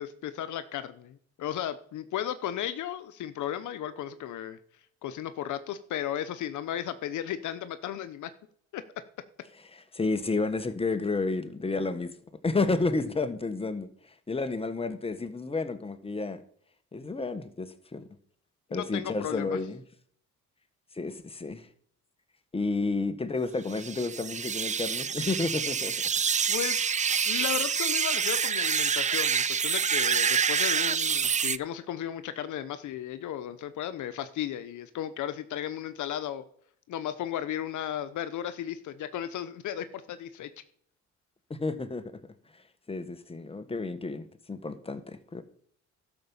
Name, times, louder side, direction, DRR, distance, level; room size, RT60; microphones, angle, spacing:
voice 1, 0.0-4.6 5.0-8.3 8.7-8.8 18.7-19.6 26.5-26.8 27.2-36.4 36.9-40.5, left 11 dB, 75° left, 0.9 m, -35 dB
voice 2, 9.7-12.1 12.4-13.9 14.3-16.4 16.9-18.1 18.7-19.8 20.9-21.7 22.5-25.9 41.5-42.1 42.9-45.4, left 3 dB, 20° left, 1.4 m, -31 dB
sound 1, 23.7-31.6, right 7 dB, 25° right, 0.4 m, -27 dB
12.0 x 6.1 x 7.1 m
cardioid pair, 90°, 30 cm